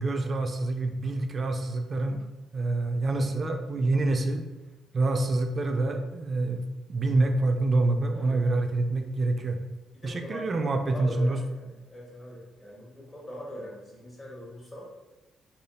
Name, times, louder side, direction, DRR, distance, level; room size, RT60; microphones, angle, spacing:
voice 1, 0.0-2.2 2.5-4.4 4.9-9.6 10.0-11.4, right 2 dB, 40° right, 5 dB, 0.4 m, -26 dB
voice 2, 8.1-8.4 9.9-14.9, equal, 20° left, -4 dB, 1.1 m, -42 dB
3.3 x 2.7 x 2.3 m, 1.1 s
cardioid pair, 90°, 0 cm